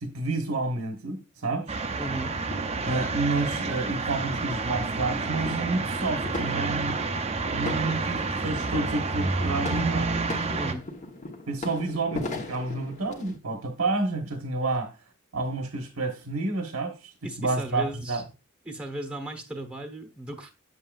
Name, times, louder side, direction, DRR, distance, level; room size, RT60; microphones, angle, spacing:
voice 1, 0.0-1.8 2.8-7.0 7.5-10.2 11.5-15.0 15.3-18.2, right 3 dB, 85° right, 4 dB, 1.2 m, -29 dB
sound 1, 1.7-10.7, right 3 dB, 30° right, 0.6 m, -29 dB
voice 2, 2.0-2.3 10.5-10.8 17.2-18.2 18.6-20.5, right 1 dB, 5° right, 5 dB, 1.0 m, -36 dB
sound 2, 2.5-13.4, left 2 dB, 35° left, 1.1 m, -40 dB
8.2 x 7.5 x 2.4 m, 0.30 s
head